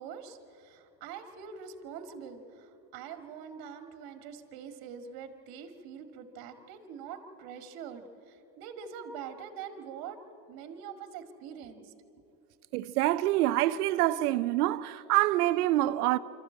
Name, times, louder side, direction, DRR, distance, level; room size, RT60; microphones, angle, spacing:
voice 1, 0.0-10.2 10.5-11.9, right 7 dB, 50° right, 2.2 m, -44 dB
voice 2, 12.7-16.2, right 15 dB, 85° right, 0.8 m, -26 dB
25.5 x 13.5 x 8.8 m
supercardioid pair, 115°, 45 cm